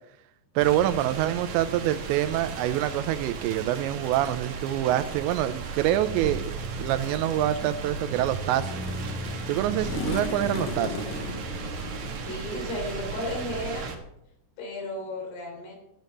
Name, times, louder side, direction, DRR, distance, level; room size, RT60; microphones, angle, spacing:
sound 1, 0.6-14.0, right 4 dB, 55° right, 2.3 m, -35 dB
voice 1, 0.6-8.7 9.5-11.0, right 12 dB, 85° right, 12 dB, 3.0 m, -26 dB
sound 2, 6.8-12.1, left 5 dB, 90° left, 3.6 m, -38 dB
voice 2, 12.2-14.0 14.6-15.8, left 1 dB, 65° left, 1 dB, 5.6 m, -34 dB
13.0 x 8.4 x 6.7 m, 0.83 s
omnidirectional pair, 5.1 m